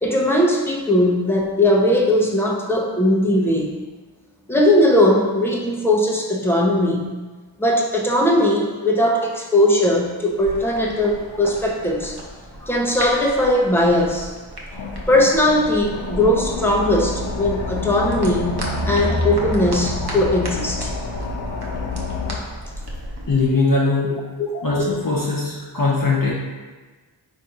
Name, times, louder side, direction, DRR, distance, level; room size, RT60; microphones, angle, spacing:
voice 1, 0.0-3.7 4.5-7.0 7.6-12.2 12.6-14.3 15.1-18.6 18.9-20.9 24.4-24.5, left 1 dB, 5° left, -2 dB, 0.7 m, -19 dB
sound 1, 10.3-23.5, right 1 dB, 55° right, 0.9 m, -36 dB
sound 2, 14.7-22.4, left 2 dB, 80° left, 0.7 m, -27 dB
voice 2, 23.3-24.2 24.5-26.3, left 3 dB, 45° left, -6 dB, 0.8 m, -20 dB
4.1 x 2.7 x 4.8 m, 1.3 s
wide cardioid pair, 40°, 45 cm